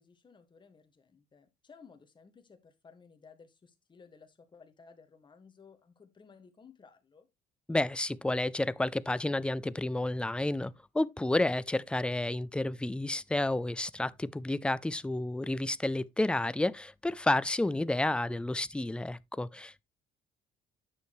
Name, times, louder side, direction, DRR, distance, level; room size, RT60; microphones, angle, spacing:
voice 1, 0.0-7.3, left 5 dB, 25° left, 1.7 m, -57 dB
voice 2, 7.7-19.8, left 2 dB, 5° left, 0.4 m, -31 dB
9.8 x 6.5 x 3.1 m
cardioid pair, 110°, 17 cm